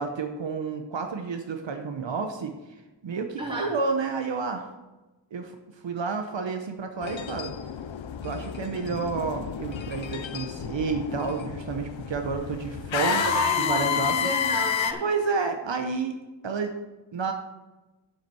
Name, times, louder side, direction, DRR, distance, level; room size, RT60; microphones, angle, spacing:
voice 1, 0.0-4.7 5.3-5.5 5.8-7.5 8.2-13.2 13.6-14.2 15.0-16.2 16.4-16.7 17.1-17.3, right 4 dB, 75° right, 5 dB, 0.8 m, -30 dB
voice 2, 3.4-3.7 13.0-15.0, equal, 10° right, -4 dB, 3.5 m, -30 dB
sound 1, 7.0-14.9, left 9 dB, 90° left, 0.6 m, -30 dB
7.5 x 5.8 x 6.8 m, 1.1 s
wide cardioid pair, 50°, 45 cm